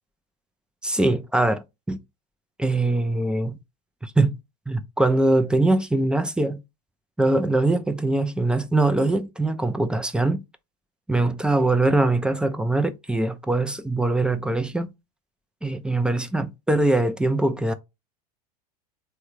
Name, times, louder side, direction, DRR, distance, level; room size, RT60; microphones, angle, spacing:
voice 1, 0.8-2.0 2.6-3.6 4.0-4.3 4.7-6.6 7.2-10.4 11.1-14.9 15.6-17.7, right 2 dB, 5° right, 0.4 m, -22 dB
3.4 x 2.1 x 2.9 m
hypercardioid pair, 90°, 21 cm